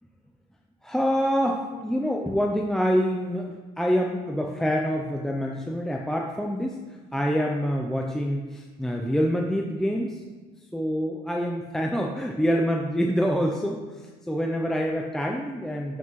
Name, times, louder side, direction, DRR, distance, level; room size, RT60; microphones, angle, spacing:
voice 1, 0.8-6.8 7.1-10.2 10.7-16.0, equal, 5° left, 1 dB, 0.5 m, -26 dB
11.5 x 6.0 x 3.1 m, 1.4 s
cardioid pair, 110°, 17 cm